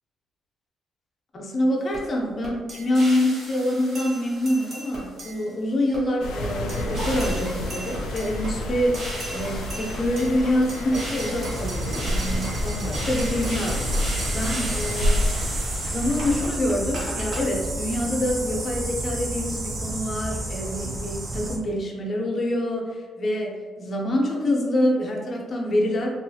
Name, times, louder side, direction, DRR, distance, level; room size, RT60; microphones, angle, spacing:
voice 1, 1.3-9.0 9.3-13.8 14.3-15.3 15.8-26.1, left 1 dB, 45° left, -1 dB, 0.6 m, -26 dB
sound 1, 1.9-2.0 2.4-5.5 5.9-6.0 6.4-17.4, right 1 dB, 60° right, 1.0 m, -36 dB
sound 2, 6.2-16.5, left 1 dB, 90° left, 0.4 m, -29 dB
sound 3, 11.5-21.6, right 1 dB, 35° right, 0.4 m, -31 dB
2.6 x 2.4 x 2.6 m, 1.5 s
cardioid pair, 90°, 0 cm